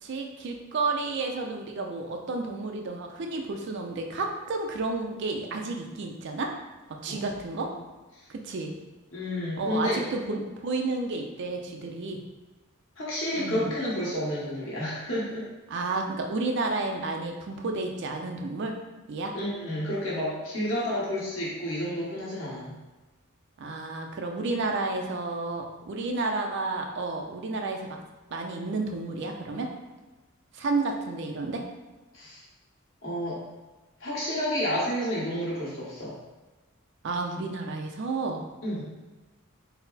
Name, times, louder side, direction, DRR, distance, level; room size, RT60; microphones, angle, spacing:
voice 1, 0.0-6.5 6.9-7.7 8.3-8.7 9.6-12.2 13.4-13.7 15.7-18.7 19.1-19.3 23.6-28.0 28.3-29.7 30.5-31.6 37.0-38.4, right 3 dB, 55° right, 3 dB, 0.4 m, -31 dB
voice 2, 9.1-10.0 10.3-10.4 13.0-15.5 19.3-22.7 32.1-32.4 33.0-33.4 34.0-36.2 38.6-38.9, equal, 65° left, -7 dB, 1.4 m, -30 dB
4.0 x 2.0 x 4.0 m, 1.2 s
head